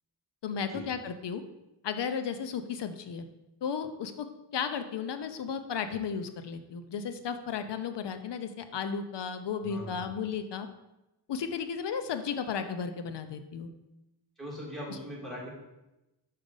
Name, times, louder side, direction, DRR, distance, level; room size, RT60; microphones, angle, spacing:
voice 1, 0.4-1.4 1.8-3.3 3.6-4.2 4.5-10.7 11.3-13.7, left 6 dB, 65° left, 9 dB, 0.8 m, -34 dB
voice 2, 9.6-10.1 14.4-15.5, equal, ahead, -5 dB, 2.5 m, -40 dB
5.7 x 5.1 x 5.4 m, 0.97 s
wide cardioid pair, 115°, 44 cm